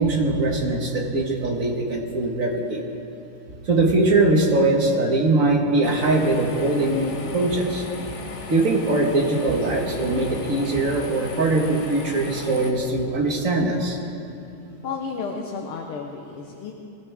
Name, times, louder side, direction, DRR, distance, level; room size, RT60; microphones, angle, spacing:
voice 1, 0.0-2.8 3.7-7.8 8.5-14.0, right 2 dB, 40° right, 0 dB, 2.0 m, -21 dB
sound 1, 5.8-12.7, left 3 dB, 45° left, 1.0 m, -36 dB
voice 2, 14.8-16.7, left 5 dB, 85° left, 1 dB, 2.0 m, -32 dB
22.0 x 15.0 x 3.6 m, 2.7 s
omnidirectional pair, 2.4 m